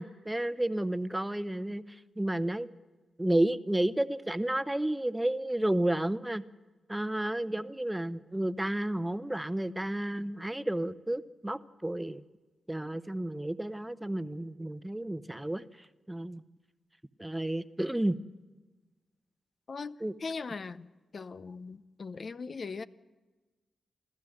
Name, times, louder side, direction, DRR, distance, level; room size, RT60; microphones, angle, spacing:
voice 1, 0.0-2.7 3.2-6.4 6.9-12.2 12.7-16.4 17.2-18.2 20.0-20.1, right 1 dB, 15° right, 0.9 m, -31 dB
voice 2, 20.2-20.9 21.1-22.8, left 4 dB, 55° left, 0.7 m, -39 dB
28.5 x 13.0 x 7.8 m
supercardioid pair, 40°, 0 cm